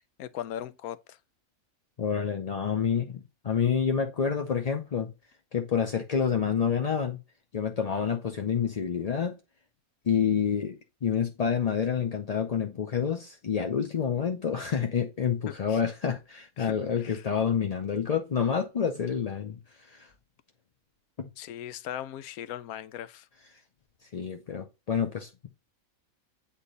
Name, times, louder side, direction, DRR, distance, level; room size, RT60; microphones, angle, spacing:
voice 1, 0.2-1.2 15.5-15.8 16.6-17.2 21.4-23.3, left 11 dB, 85° left, 1.1 m, -39 dB
voice 2, 2.0-5.1 5.5-7.2 7.5-9.3 10.1-20.1 21.2-21.3 24.1-25.5, left 7 dB, 45° left, 0.5 m, -28 dB
8.3 x 3.6 x 3.9 m
omnidirectional pair, 1.5 m